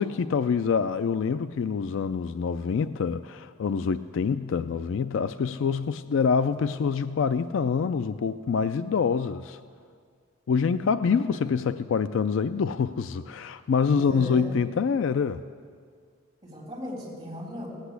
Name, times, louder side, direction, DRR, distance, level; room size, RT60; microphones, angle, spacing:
voice 1, 0.0-9.6 10.5-15.4, left 6 dB, 65° left, 13 dB, 0.3 m, -26 dB
voice 2, 13.9-14.5 16.4-17.7, equal, 20° right, -3 dB, 3.7 m, -37 dB
17.5 x 8.2 x 8.1 m, 2.1 s
head